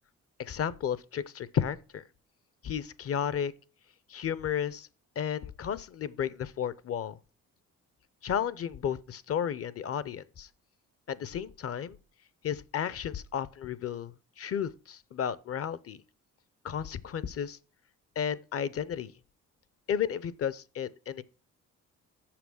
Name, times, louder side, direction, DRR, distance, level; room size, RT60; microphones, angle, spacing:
voice 1, 0.4-2.0 2.6-3.5 4.1-4.9 5.2-7.2 8.2-10.5 11.1-12.0 12.4-16.0 16.6-17.6 18.2-19.1 19.9-21.2, left 8 dB, 50° left, 0.7 m, -33 dB
7.2 x 5.9 x 6.2 m
cardioid pair, 90°, 30 cm